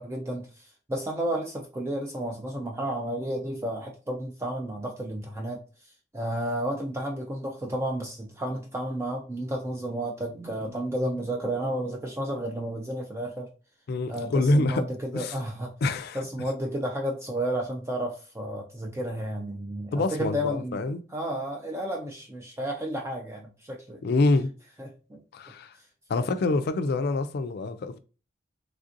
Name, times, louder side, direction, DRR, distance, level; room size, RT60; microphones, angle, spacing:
voice 1, 0.0-13.5 14.1-15.7 16.1-20.8 21.1-24.0 24.8-25.2 26.2-26.3, right 1 dB, 15° right, 0.4 m, -32 dB
voice 2, 13.9-14.9 15.1-15.4 15.8-16.2 19.9-21.0 24.0-24.5 25.3-25.7 26.1-28.0, left 2 dB, 55° left, 0.3 m, -26 dB
3.3 x 2.6 x 2.5 m
head